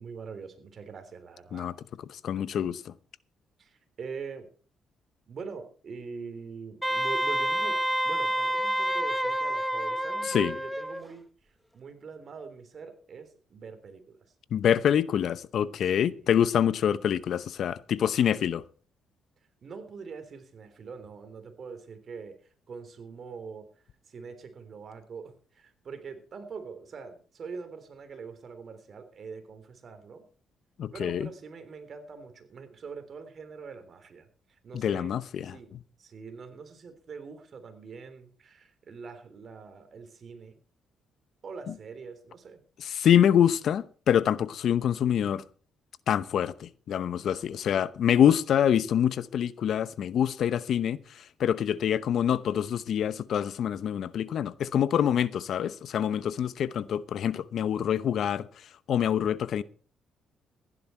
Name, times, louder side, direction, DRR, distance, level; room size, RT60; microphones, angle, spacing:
voice 1, 0.0-1.7 3.6-4.5 5.3-11.3 11.7-14.2 16.0-16.5 19.6-22.4 22.7-23.7 24.1-30.2 30.9-35.1 35.4-35.7 36.0-40.6 41.4-42.6, right 5 dB, 50° right, 3.4 m, -43 dB
voice 2, 2.2-2.9 10.3-10.5 14.5-18.6 30.8-31.3 34.7-35.5 42.8-45.4 46.1-51.0 51.4-58.5 58.9-59.6, left 9 dB, 65° left, 0.8 m, -25 dB
Wind instrument woodwind instrument, 6.8-11.0, right 1 dB, ahead, 1.1 m, -28 dB
15.5 x 11.0 x 4.5 m
cardioid pair, 90°, 0 cm